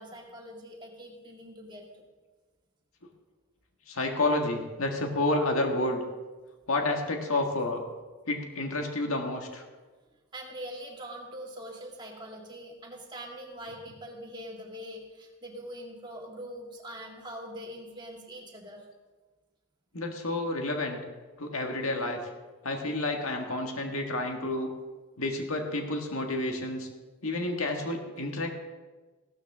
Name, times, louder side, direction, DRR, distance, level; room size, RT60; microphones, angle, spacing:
voice 1, 0.0-2.0 10.3-18.8, equal, 20° right, 0 dB, 2.0 m, -43 dB
voice 2, 3.9-6.0 6.7-7.8 8.3-9.6 19.9-21.0 21.4-22.2 22.6-24.7 25.2-26.9 27.2-28.5, left 2 dB, 75° left, 2 dB, 1.8 m, -30 dB
15.5 x 13.0 x 3.6 m, 1.3 s
head